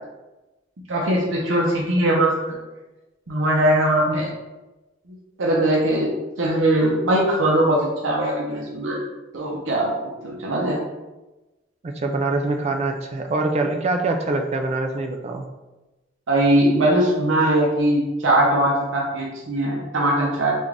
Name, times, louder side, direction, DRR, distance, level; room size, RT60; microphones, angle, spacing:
voice 1, 0.9-2.3 3.3-4.3 5.4-6.1 6.4-9.0 9.3-9.9 10.2-10.8 16.3-20.5, right 1 dB, 90° right, -3 dB, 0.7 m, -20 dB
voice 2, 11.8-15.5, right 2 dB, 35° right, 4 dB, 0.3 m, -24 dB
3.6 x 2.5 x 3.2 m, 1.1 s
head